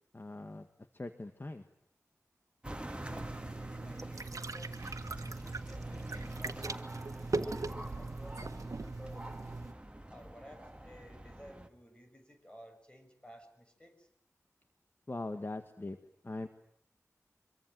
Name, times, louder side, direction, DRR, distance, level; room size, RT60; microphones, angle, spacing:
voice 1, 0.1-1.7 15.1-16.0 16.2-16.5, left 2 dB, 40° left, 8 dB, 1.7 m, -41 dB
sound 1, 2.6-11.7, right 1 dB, 20° right, 2.1 m, -46 dB
voice 2, 2.9-4.7 5.1-9.5 10.1-14.1, equal, 20° left, 5 dB, 6.9 m, -55 dB
sound 2, 3.0-9.7, right 3 dB, 80° right, 1.6 m, -40 dB
25.5 x 23.0 x 9.3 m, 0.72 s
wide cardioid pair, 55°, 6 cm